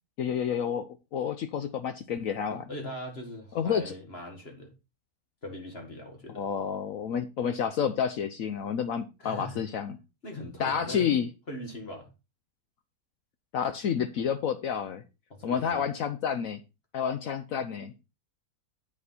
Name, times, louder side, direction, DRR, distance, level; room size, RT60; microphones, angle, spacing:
voice 1, 0.2-2.7 3.5-3.9 6.4-9.9 10.6-11.3 13.5-15.0 15.4-16.6 16.9-17.9, left 7 dB, 65° left, 1.1 m, -29 dB
voice 2, 2.5-4.7 5.4-6.5 9.2-9.6 10.2-11.2 11.5-12.1 15.3-15.9, left 1 dB, 40° left, 2.1 m, -40 dB
8.6 x 6.8 x 4.2 m
omnidirectional pair, 1.6 m